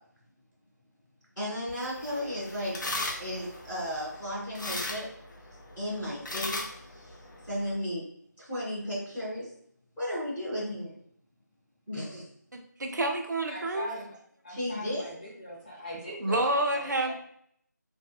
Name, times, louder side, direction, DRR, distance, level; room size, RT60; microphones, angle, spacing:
voice 1, 1.3-2.7 3.2-5.0 5.7-7.2 7.4-8.0 8.4-9.5 10.0-10.9 11.9-12.3 14.5-15.1, equal, ahead, -25 dB, 0.5 m, -34 dB
sound 1, 1.7-7.7, left 2 dB, 85° left, 0.5 m, -38 dB
voice 2, 12.5-13.9 16.2-17.1, right 1 dB, 70° right, 4 dB, 0.5 m, -28 dB
voice 3, 13.5-14.2 14.4-17.1, equal, 30° left, -5 dB, 0.8 m, -41 dB
2.6 x 2.1 x 2.3 m, 0.66 s
figure-of-eight pair, 180°, 10 cm